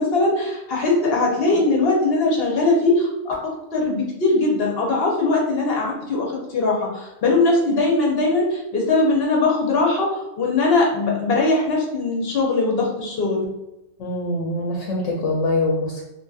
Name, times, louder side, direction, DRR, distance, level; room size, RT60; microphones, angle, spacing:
voice 1, 0.0-3.4 3.7-13.4, left 3 dB, 60° left, -2 dB, 0.9 m, -20 dB
voice 2, 14.0-16.0, left 2 dB, 85° left, -1 dB, 0.9 m, -24 dB
2.8 x 2.6 x 2.3 m, 0.95 s
omnidirectional pair, 1.2 m